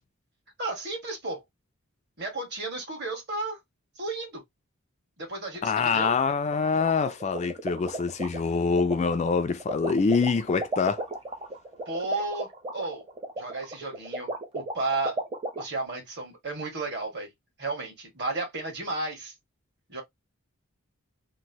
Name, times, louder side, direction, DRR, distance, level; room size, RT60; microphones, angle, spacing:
voice 1, 0.6-1.4 2.2-3.6 4.0-4.4 5.2-6.1 11.9-13.0 13.4-15.2 15.6-17.3 17.6-19.3 19.9-20.0, right 2 dB, 50° right, 1.5 m, -33 dB
voice 2, 5.6-11.0, left 5 dB, 30° left, 0.3 m, -25 dB
sound 1, 6.5-15.6, right 2 dB, 25° right, 0.7 m, -35 dB
3.0 x 2.6 x 2.7 m
head